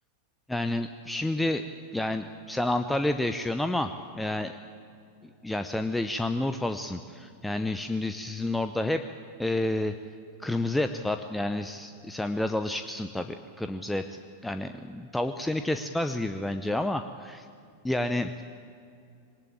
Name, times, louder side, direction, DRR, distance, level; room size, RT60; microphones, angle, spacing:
voice 1, 0.5-1.7 1.9-4.5 5.4-9.0 9.4-9.9 10.4-17.5 17.8-18.4, left 1 dB, 5° left, 8 dB, 0.8 m, -29 dB
21.5 x 19.0 x 9.0 m, 2.5 s
figure-of-eight pair, 90°, 0 cm